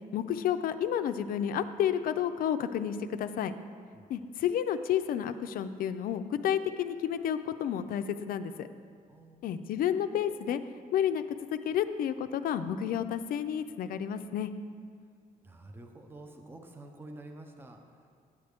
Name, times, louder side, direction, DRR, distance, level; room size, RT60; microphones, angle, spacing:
voice 1, 0.1-3.5 4.1-8.7 9.4-10.6 10.9-11.2 11.5-14.5, left 9 dB, 70° left, 10 dB, 0.4 m, -31 dB
voice 2, 3.9-4.3 9.1-9.6 15.4-18.1, right 2 dB, 15° right, 4 dB, 0.5 m, -49 dB
9.6 x 7.9 x 3.4 m, 2.2 s
wide cardioid pair, 170°, 16 cm